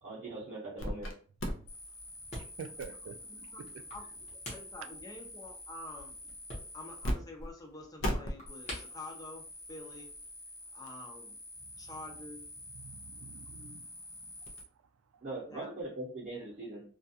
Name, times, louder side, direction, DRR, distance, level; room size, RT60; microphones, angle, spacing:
voice 1, 0.0-1.1 15.2-16.8, right 2 dB, 50° right, 0.7 m, -41 dB
sound 1, 0.8-1.1 1.4-7.1 7.4-7.5 8.0-14.6, equal, 80° left, 0.6 m, -42 dB
sound 2, 1.6-10.3, equal, 35° left, 0.9 m, -50 dB
voice 2, 2.4-3.8 4.8-4.9 11.6-12.0 12.7-15.2, right 6 dB, 80° right, 0.3 m, -49 dB
voice 3, 3.3-4.1 4.3-6.2 6.7-10.1 10.7-11.4 11.8-12.4 13.5-13.7 15.5-15.7, left 2 dB, 20° left, 0.5 m, -48 dB
2.3 x 2.2 x 2.7 m
head